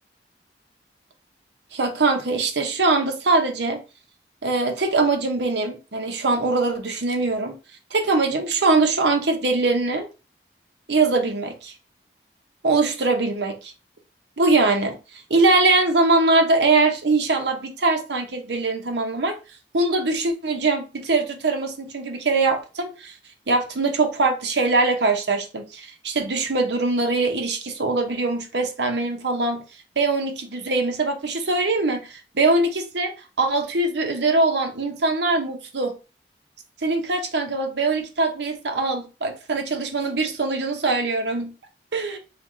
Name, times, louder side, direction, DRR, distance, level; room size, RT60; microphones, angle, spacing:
voice 1, 1.7-3.8 4.4-7.6 7.9-10.1 10.9-11.7 12.6-13.7 14.4-19.4 19.7-23.1 23.5-29.6 30.0-35.9 36.8-41.5 41.9-42.2, right 3 dB, 80° right, 0.8 m, -22 dB
3.4 x 3.0 x 3.7 m
head